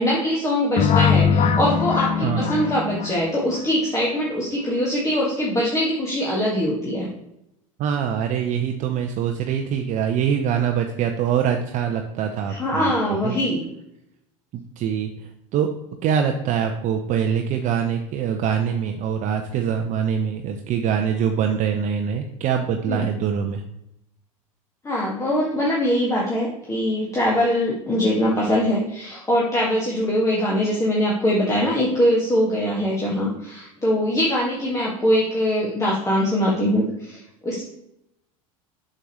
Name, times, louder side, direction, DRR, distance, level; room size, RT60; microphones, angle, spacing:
voice 1, 0.0-7.1 12.5-13.6 22.9-23.0 24.8-37.6, equal, 15° left, -5 dB, 1.8 m, -22 dB
sound 1, 0.8-3.6, left 6 dB, 35° left, 0.6 m, -21 dB
voice 2, 2.2-2.6 7.8-12.9 13.2-13.4 14.5-15.7 16.0-23.6, right 8 dB, 45° right, 4 dB, 0.7 m, -24 dB
7.8 x 6.4 x 3.1 m, 0.80 s
hypercardioid pair, 80°, 18 cm